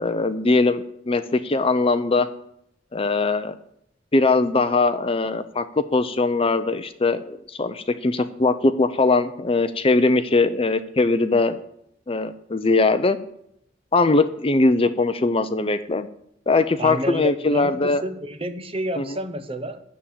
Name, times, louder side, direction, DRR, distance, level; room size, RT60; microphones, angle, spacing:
voice 1, 0.0-2.3 2.9-3.5 4.1-11.6 12.1-13.2 13.9-16.1 16.5-18.0 19.0-19.1, left 3 dB, 30° left, 11 dB, 0.6 m, -21 dB
voice 2, 16.8-19.8, equal, 30° right, 9 dB, 0.9 m, -29 dB
10.0 x 7.2 x 8.4 m, 0.74 s
head